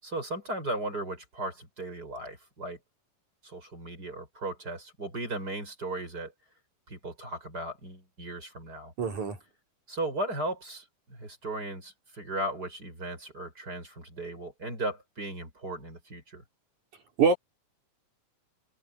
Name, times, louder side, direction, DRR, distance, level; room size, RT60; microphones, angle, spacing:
voice 1, 0.0-2.8 3.4-6.3 6.9-8.9 9.9-16.4, right 1 dB, 25° right, 6.9 m, -36 dB
voice 2, 9.0-9.4 17.2-17.4, right 5 dB, 55° right, 4.7 m, -24 dB
omnidirectional pair, 4.3 m